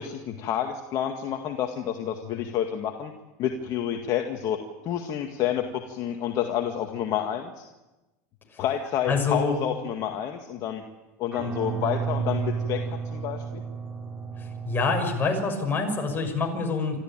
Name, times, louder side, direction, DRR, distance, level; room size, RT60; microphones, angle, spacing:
voice 1, 0.0-3.1 3.4-7.6 8.6-10.8 11.2-13.6, left 9 dB, 45° left, 4 dB, 2.0 m, -29 dB
voice 2, 9.1-9.6 14.4-17.0, left 4 dB, 25° left, 2 dB, 6.3 m, -26 dB
sound 1, 11.3-15.1, right 6 dB, 20° right, 3.5 m, -32 dB
26.5 x 14.0 x 9.0 m, 1.1 s
supercardioid pair, 115°, 8 cm